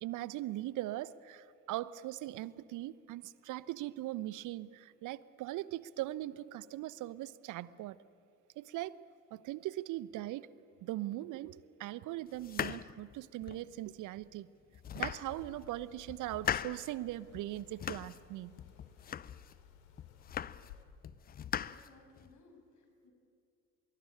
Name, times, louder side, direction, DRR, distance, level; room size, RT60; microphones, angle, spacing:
voice 1, 0.0-8.0 8.6-9.0 9.3-10.5 10.8-14.5 14.9-18.5, right 15 dB, 45° right, 0.9 m, -40 dB
sound 1, 12.4-13.7 14.2-14.3 14.7-15.7 16.1-16.9 17.3-18.3 18.6-19.6 20.0-20.8 21.0-22.3, left 9 dB, 20° left, 0.5 m, -40 dB
sound 2, 14.8-20.8, left 9 dB, 70° left, 2.7 m, -58 dB
voice 2, 21.6-23.1, left 2 dB, 45° left, 6.7 m, -61 dB
23.5 x 22.5 x 8.9 m
figure-of-eight pair, 60°, 42 cm